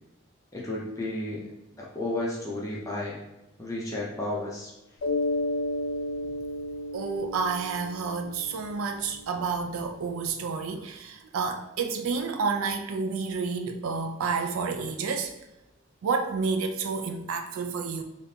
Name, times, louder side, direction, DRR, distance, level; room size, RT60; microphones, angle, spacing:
voice 1, 0.5-1.4 1.8-3.2 3.6-4.7, left 1 dB, 15° left, -4 dB, 0.5 m, -32 dB
Mallet percussion, 5.0-9.4, left 1 dB, 65° left, 0.4 m, -32 dB
voice 2, 6.9-15.3 16.0-18.0, right 5 dB, 90° right, 6 dB, 0.3 m, -30 dB
3.5 x 2.5 x 2.7 m, 0.95 s
head